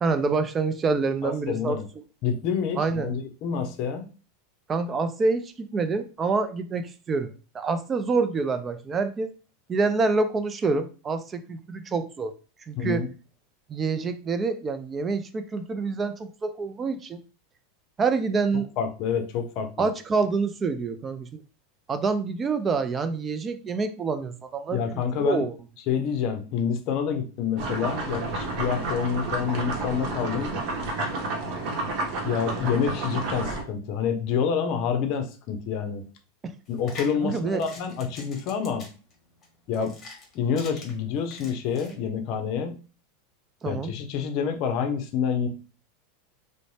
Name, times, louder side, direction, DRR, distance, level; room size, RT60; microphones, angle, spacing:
voice 1, 0.0-1.8 2.8-3.1 4.7-9.3 9.7-12.3 12.7-13.0 13.7-17.2 18.0-18.7 19.8-21.3 21.9-25.6 36.4-36.5 37.2-37.6 43.6-43.9, right 4 dB, 25° right, 0.3 m, -27 dB
voice 2, 1.2-1.9 2.2-4.1 12.8-13.1 18.5-19.9 24.7-25.5 25.9-30.5 32.2-36.1 36.7-38.9 39.7-40.0 40.3-42.8 43.6-45.5, left 7 dB, 50° left, 0.6 m, -28 dB
sound 1, 27.6-33.6, right 2 dB, 50° right, 0.8 m, -30 dB
sound 2, 36.7-41.9, left 3 dB, 30° left, 1.1 m, -45 dB
2.6 x 2.0 x 3.2 m
supercardioid pair, 125°, 0 cm